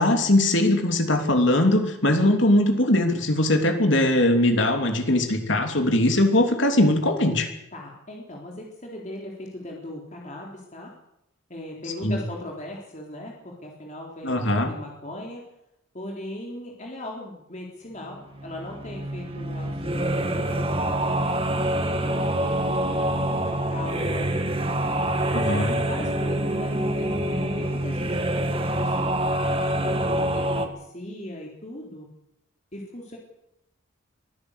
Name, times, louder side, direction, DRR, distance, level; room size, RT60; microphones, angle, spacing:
voice 1, 0.0-7.5 12.0-12.2 14.2-14.7 25.3-25.8, left 1 dB, 60° left, 5 dB, 3.1 m, -21 dB
voice 2, 7.7-10.9 11.5-15.4 15.9-21.2 21.7-24.3 24.8-32.1 32.7-33.2, left 1 dB, 35° left, -1 dB, 3.9 m, -39 dB
sound 1, 18.1-30.7, right 1 dB, 25° right, 1.7 m, -26 dB
23.5 x 15.5 x 8.2 m, 0.81 s
head